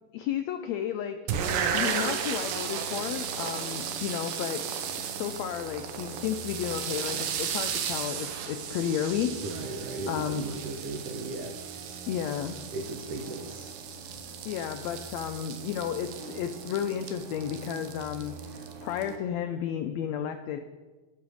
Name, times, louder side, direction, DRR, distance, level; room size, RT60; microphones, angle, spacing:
voice 1, 0.1-1.2 1.7-4.7 5.0-9.4 10.1-10.4 12.1-12.6 14.4-20.6, left 9 dB, 85° left, 8 dB, 1.5 m, -32 dB
sound 1, 1.3-19.2, right 7 dB, 90° right, 2.6 m, -35 dB
voice 2, 9.4-11.6 11.9-12.0 12.7-13.7, right 3 dB, 70° right, 3 dB, 1.5 m, -36 dB
12.0 x 6.0 x 6.3 m, 1.3 s
omnidirectional pair, 3.7 m